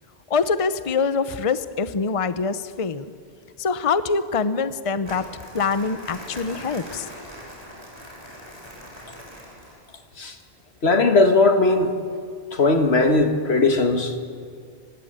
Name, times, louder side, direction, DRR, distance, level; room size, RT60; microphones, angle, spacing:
voice 1, 0.3-3.0 3.6-5.3 5.5-7.1, left 5 dB, 35° left, 13 dB, 0.8 m, -24 dB
Crumpling crinkling, 5.0-9.9, equal, 25° right, 6.6 m, -40 dB
voice 2, 10.8-11.9 12.5-14.1, left 3 dB, 90° left, 6 dB, 2.1 m, -18 dB
25.0 x 19.5 x 8.8 m, 2.2 s
omnidirectional pair, 1.0 m